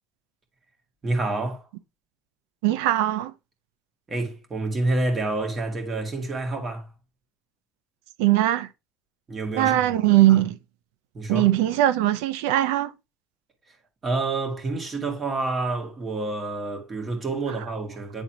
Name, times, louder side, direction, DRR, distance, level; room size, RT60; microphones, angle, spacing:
voice 1, 1.0-1.7 4.1-6.9 9.3-9.9 10.3-10.4 11.1-11.5 14.0-18.2, right 2 dB, 25° right, 2.0 m, -28 dB
voice 2, 2.6-3.3 8.2-8.7 9.6-10.6 11.3-12.9, right 14 dB, 85° right, 0.6 m, -20 dB
8.9 x 3.9 x 2.8 m
cardioid pair, 130°, 0 cm